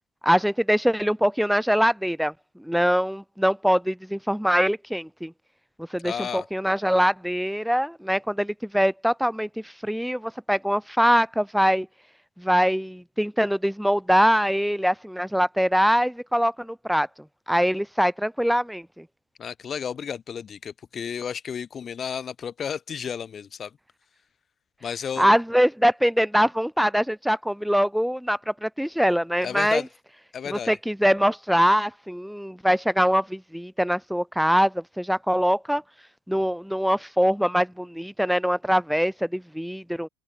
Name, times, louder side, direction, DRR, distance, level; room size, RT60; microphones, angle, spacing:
voice 1, 0.2-2.3 2.6-5.3 5.8-11.9 12.4-17.1 17.5-19.0 25.2-29.8 30.5-35.8 36.3-40.1, equal, ahead, 2.6 m, -23 dB
voice 2, 6.0-6.5 19.4-23.7 24.8-25.3 29.4-29.9 30.3-30.7, left 7 dB, 30° left, 1.2 m, -32 dB
open air
hypercardioid pair, 100°, 0 cm